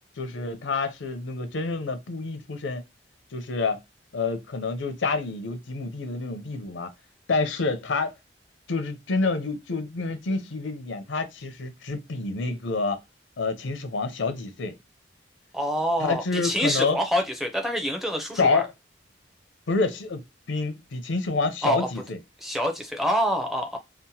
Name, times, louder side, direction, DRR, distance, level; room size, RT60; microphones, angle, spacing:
voice 1, 0.2-2.8 3.3-3.8 4.1-6.9 7.3-8.1 8.7-13.0 13.4-14.8 16.0-17.0 18.4-18.7 19.7-20.2 20.5-22.2, left 3 dB, 75° left, 0.6 m, -28 dB
voice 2, 15.5-18.6 21.6-21.9 22.4-23.8, equal, ahead, 0.4 m, -26 dB
2.8 x 2.0 x 2.7 m
head